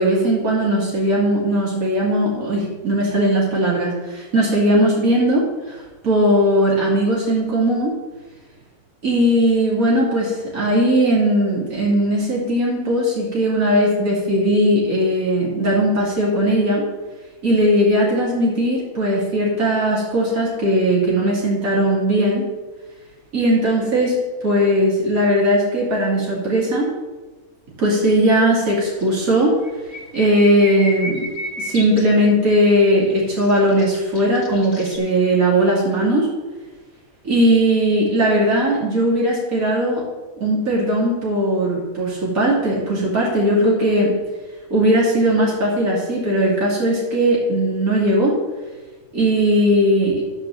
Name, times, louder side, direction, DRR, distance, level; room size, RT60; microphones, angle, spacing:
voice 1, 0.0-7.9 9.0-16.9 17.4-22.5 23.3-24.2 24.4-26.9 27.8-29.6 30.1-31.3 31.6-36.3 37.2-40.0 40.4-44.1 44.7-48.3 49.1-50.2, equal, 70° right, -5 dB, 3.0 m, -18 dB
sound 1, 28.8-29.4 29.6-32.0 33.1-35.0, left 1 dB, 65° left, 2.3 m, -32 dB
12.5 x 4.9 x 7.3 m, 1.2 s
omnidirectional pair, 1.5 m